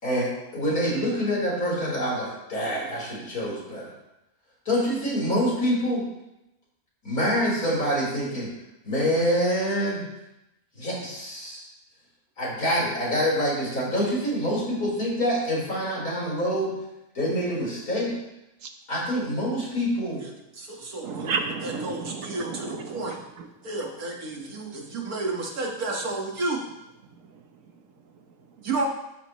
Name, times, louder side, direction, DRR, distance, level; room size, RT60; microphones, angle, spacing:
voice 1, 0.0-3.9 4.6-6.0 7.0-8.5 8.8-10.0 10.8-11.7 12.4-16.7 17.1-18.1 18.9-20.2, equal, 80° left, -5 dB, 4.8 m, -26 dB
voice 2, 20.2-21.3 21.6-23.2 23.6-26.6 28.6-28.9, right 2 dB, 80° right, -1 dB, 2.2 m, -31 dB
voice 3, 21.0-23.5 23.8-24.0 24.6-24.8 27.1-28.7, right 5 dB, 65° right, 6 dB, 1.3 m, -35 dB
13.0 x 9.8 x 3.1 m, 0.91 s
omnidirectional pair, 1.5 m